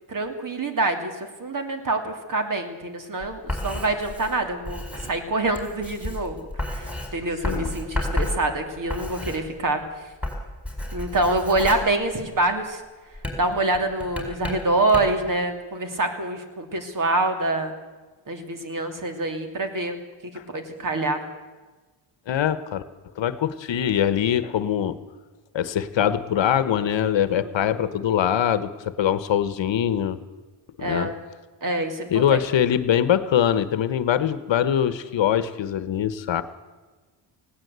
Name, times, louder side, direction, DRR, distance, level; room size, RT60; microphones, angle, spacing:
voice 1, 0.1-9.8 10.9-12.8 13.4-17.7 18.3-20.0 20.3-21.2 27.4-27.7 30.8-31.2 31.6-32.4, right 2 dB, 40° right, 6 dB, 2.7 m, -26 dB
Writing, 3.2-9.9 10.1-12.7 13.1-15.3, left 1 dB, 5° right, 4.9 m, -32 dB
voice 2, 7.4-7.7 22.3-22.8 23.2-25.0 25.5-30.2 30.8-31.1 32.1-36.4, left 9 dB, 65° left, 13 dB, 1.2 m, -23 dB
19.5 x 16.5 x 8.1 m, 1.3 s
cardioid pair, 130°, 49 cm